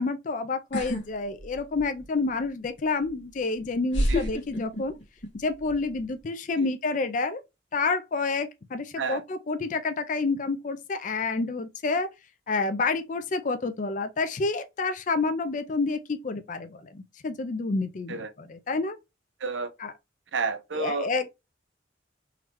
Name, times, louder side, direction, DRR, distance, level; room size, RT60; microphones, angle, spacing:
voice 1, 0.0-4.9 5.3-7.4 7.7-12.1 12.5-19.0 19.8-19.9 20.8-21.3, left 3 dB, 45° left, 0.4 m, -29 dB
sound 1, 0.7-1.0 1.4-2.0 3.1-3.2 3.9-5.3 5.6-6.0, equal, 85° left, 1.6 m, -28 dB
voice 2, 19.4-19.7 20.3-21.1, right 4 dB, 80° right, 0.6 m, -30 dB
3.8 x 3.1 x 2.9 m
head